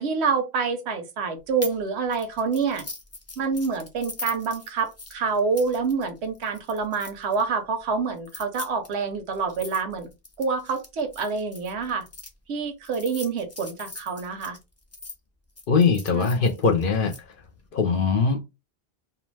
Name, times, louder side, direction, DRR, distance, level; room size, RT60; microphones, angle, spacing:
voice 1, 0.0-2.8 3.4-10.1 10.4-12.0 12.5-14.6 16.1-16.6, right 5 dB, 90° right, 0.9 m, -27 dB
sound 1, 1.6-1.8 2.1-7.4 8.2-12.3 12.8-15.1 15.6-17.2, left 2 dB, 25° left, 0.3 m, -41 dB
voice 2, 15.7-17.1 17.7-18.4, left 5 dB, 60° left, 0.7 m, -21 dB
2.4 x 2.2 x 3.2 m
omnidirectional pair, 1.1 m